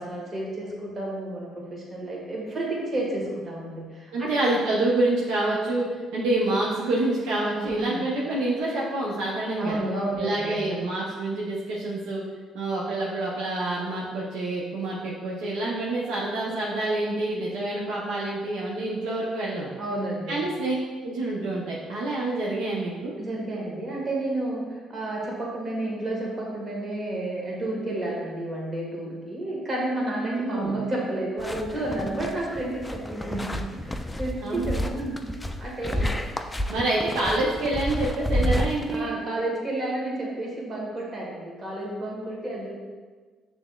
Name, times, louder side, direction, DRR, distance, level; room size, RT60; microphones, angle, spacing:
voice 1, 0.0-4.6 7.6-8.1 9.6-10.7 19.8-20.5 23.2-35.2 35.6-36.1 38.9-42.7, right 1 dB, 40° right, -3 dB, 1.4 m, -31 dB
voice 2, 4.1-9.8 10.2-12.2 12.5-19.7 20.3-20.8 21.0-23.2 30.3-30.8 34.4-34.7 35.9-36.0 36.7-39.2, right 2 dB, 85° right, -5 dB, 0.6 m, -27 dB
sound 1, 31.4-39.0, equal, 10° left, 0.3 m, -30 dB
6.0 x 3.4 x 2.3 m, 1.4 s
supercardioid pair, 70°, 0 cm